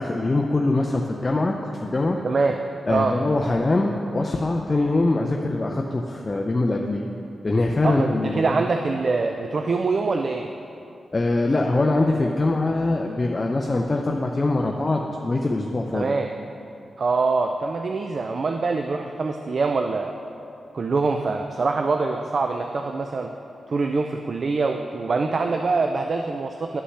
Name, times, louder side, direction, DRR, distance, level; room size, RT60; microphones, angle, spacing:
voice 1, 0.0-2.2 2.9-7.1 7.4-8.6 11.1-16.1, left 2 dB, 30° left, 1 dB, 0.5 m, -23 dB
voice 2, 2.2-2.6 2.9-3.1 7.8-10.5 15.9-16.3 17.0-20.1 20.7-23.3 23.7-26.8, right 4 dB, 50° right, 4 dB, 0.3 m, -24 dB
11.0 x 5.4 x 3.3 m, 2.7 s
cardioid pair, 85°, 0 cm